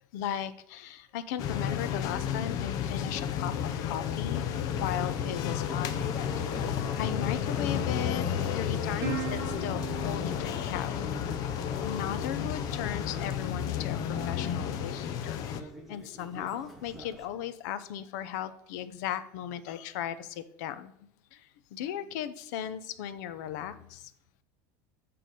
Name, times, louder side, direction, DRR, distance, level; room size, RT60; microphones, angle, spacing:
voice 1, 0.1-4.4 4.7-5.9 6.4-6.5 6.9-8.3 8.6-10.9 11.8-14.0 14.3-20.9 21.7-24.1, left 10 dB, 80° left, 13 dB, 0.7 m, -37 dB
sound 1, 1.4-15.6, left 9 dB, 40° left, 0.6 m, -32 dB
Subway metro underground, 4.7-17.2, left 1 dB, ahead, 1.0 m, -44 dB
Plucked string instrument, 9.0-11.8, right 8 dB, 30° right, 1.6 m, -40 dB
8.4 x 3.8 x 6.6 m, 0.72 s
cardioid pair, 170°, 9 cm